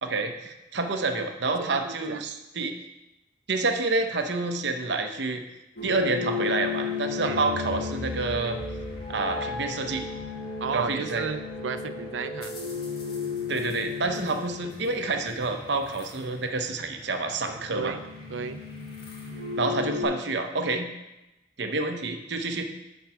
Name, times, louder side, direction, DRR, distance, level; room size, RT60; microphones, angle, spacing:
voice 1, 0.0-2.7 3.5-5.4 5.8-8.6 9.1-10.0 10.7-11.2 13.5-17.9 19.6-20.9 21.6-22.6, right 3 dB, 70° right, 5 dB, 0.8 m, -28 dB
voice 2, 1.6-2.2 7.2-7.4 10.6-12.5 17.7-18.0 18.3-18.6, right 5 dB, 90° right, 10 dB, 0.5 m, -33 dB
sound 1, 5.8-20.0, left 5 dB, 55° left, 1.9 m, -35 dB
9.1 x 4.6 x 5.8 m, 0.96 s
head